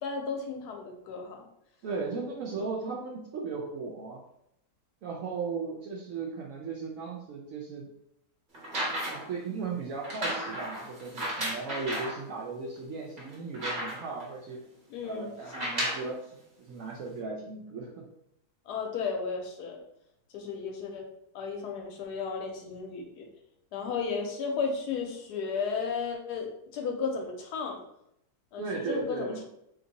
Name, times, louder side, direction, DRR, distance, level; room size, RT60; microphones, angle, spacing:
voice 1, 0.0-1.4 14.9-15.3 18.7-19.8 20.3-21.0 21.3-23.3 23.7-27.8 28.5-29.4, left 5 dB, 75° left, 2 dB, 1.1 m, -34 dB
voice 2, 1.8-4.2 5.0-7.9 9.1-14.6 15.0-18.1 28.6-29.4, right 4 dB, 70° right, -1 dB, 0.8 m, -36 dB
sound 1, 8.5-9.4 10.0-12.2 12.8-12.9 13.2-14.2 15.4-16.1 17.1-17.2, equal, 35° right, 1.0 m, -34 dB
2.9 x 2.6 x 3.9 m, 0.78 s
omnidirectional pair, 1.8 m